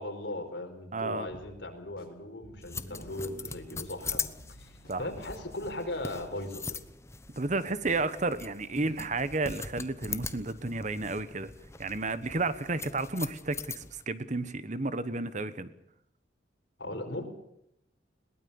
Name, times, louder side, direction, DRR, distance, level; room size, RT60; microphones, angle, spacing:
voice 1, 0.0-6.8 8.8-8.9 16.8-17.3, left 1 dB, 65° left, 4 dB, 4.8 m, -38 dB
voice 2, 0.9-1.3 4.9-5.1 7.4-11.5 11.8-15.7, right 3 dB, 40° right, 14 dB, 1.2 m, -32 dB
sound 1, 1.3-6.9, left 1 dB, 50° left, 3.4 m, -55 dB
sound 2, 2.6-14.0, left 4 dB, 15° left, 1.0 m, -41 dB
22.0 x 19.5 x 7.1 m, 0.76 s
head